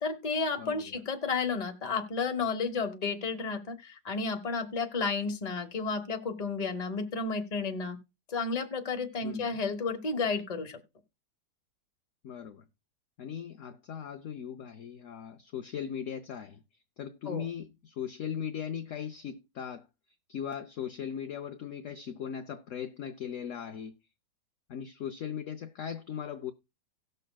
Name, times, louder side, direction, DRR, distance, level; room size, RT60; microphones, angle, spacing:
voice 1, 0.0-8.0 8.3-10.8 17.3-17.4, left 4 dB, 25° left, 0.9 m, -32 dB
voice 2, 0.6-1.0 9.2-9.6 12.2-12.6 13.2-16.6 17.0-19.9 20.3-23.9 24.7-26.5, left 8 dB, 65° left, 0.8 m, -38 dB
18.0 x 6.6 x 2.2 m
omnidirectional pair, 1.9 m